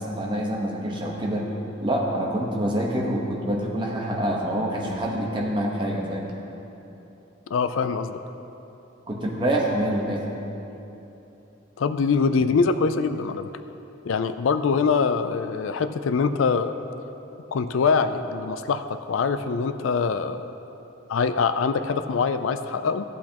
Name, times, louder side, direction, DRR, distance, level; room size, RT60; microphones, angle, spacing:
voice 1, 0.0-1.5 1.8-6.3 9.1-10.2, right 1 dB, 25° right, -2 dB, 1.1 m, -26 dB
voice 2, 7.5-8.2 11.8-13.5 14.1-16.7 17.5-20.4 21.1-23.0, left 5 dB, 80° left, 11 dB, 0.4 m, -23 dB
14.5 x 8.1 x 2.9 m, 3.0 s
head